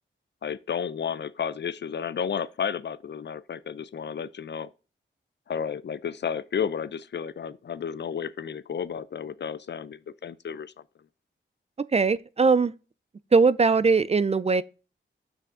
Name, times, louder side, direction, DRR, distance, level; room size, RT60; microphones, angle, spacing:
voice 1, 0.4-4.7 5.5-10.7, left 7 dB, 60° left, 0.4 m, -32 dB
voice 2, 11.9-12.7 13.3-14.6, right 4 dB, 30° right, 0.4 m, -20 dB
6.0 x 5.5 x 3.7 m
wide cardioid pair, 65°, 20 cm